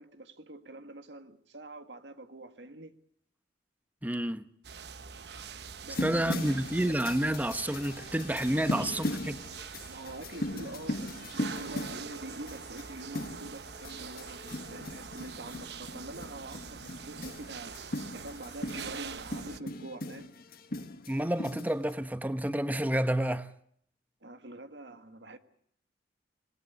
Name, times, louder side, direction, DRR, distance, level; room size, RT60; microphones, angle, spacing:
voice 1, 0.0-3.0 5.8-6.5 9.9-17.8 18.1-20.3 24.2-25.4, right 2 dB, 85° right, 1.8 m, -46 dB
voice 2, 4.0-4.5 6.0-9.4 21.1-23.5, right 1 dB, 10° right, 1.0 m, -29 dB
sound 1, 4.6-19.6, right 5 dB, 70° right, 1.0 m, -44 dB
sound 2, 5.9-21.9, left 1 dB, 55° left, 1.5 m, -39 dB
26.0 x 20.0 x 8.1 m
head